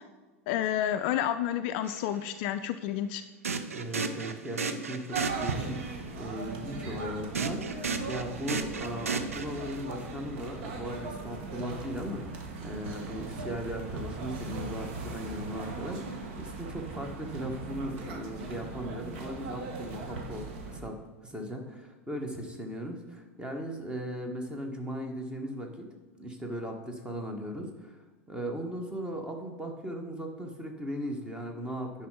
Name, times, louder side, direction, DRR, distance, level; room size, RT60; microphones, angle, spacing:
voice 1, 0.5-3.2, left 11 dB, 50° left, 10 dB, 0.4 m, -30 dB
sound 1, 1.8-2.0 3.4-5.9 7.3-10.0, right 4 dB, 75° right, 0.5 m, -34 dB
voice 2, 3.7-12.2 12.6-25.9 26.1-28.0 28.3-32.1, equal, 10° right, 4 dB, 1.3 m, -38 dB
sound 2, 5.1-20.8, right 4 dB, 55° right, 1.2 m, -39 dB
10.0 x 5.6 x 3.8 m, 1.3 s
figure-of-eight pair, 85°, 8 cm